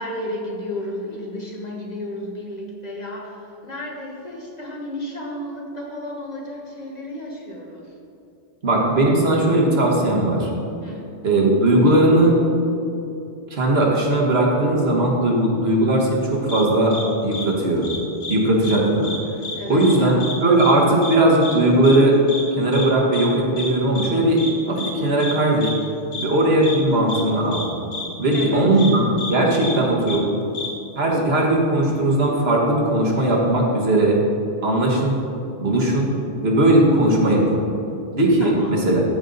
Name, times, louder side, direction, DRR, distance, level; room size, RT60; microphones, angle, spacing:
voice 1, 0.0-7.9 10.8-11.1 19.5-20.4 28.3-29.1 38.4-38.8, left 1 dB, 40° left, -2 dB, 1.3 m, -33 dB
voice 2, 8.6-10.5 11.2-12.3 13.5-16.9 17.2-17.8 18.3-19.1 19.7-22.2 22.6-25.7 26.2-27.6 28.2-29.0 29.3-30.2 31.0-34.2 34.6-35.2 35.6-36.1 36.4-37.6 38.1-39.0, right 1 dB, 60° right, -2 dB, 1.6 m, -18 dB
sound 1, 16.5-16.6 16.9-17.0 17.3-17.4 17.8-18.4 18.6-18.8 19.0-19.6 19.8-19.9 20.2-20.3 20.6-20.7 21.0-21.2 21.4-21.6 21.8-22.0 22.3-22.4 22.7-22.9 23.1-23.3 23.6-23.7 24.0-24.1 24.4-24.5 24.8-24.9 25.2-25.3 25.6-25.7 26.1-26.3 26.6-26.8 27.1-27.2 27.5-27.6 27.9-28.1 28.3-28.5 28.8-28.9 29.2-29.3 29.6-29.7 30.1-30.2 30.5-30.7, left 3 dB, 85° left, 1.6 m, -30 dB
14.0 x 5.3 x 3.9 m, 2.7 s
omnidirectional pair, 1.2 m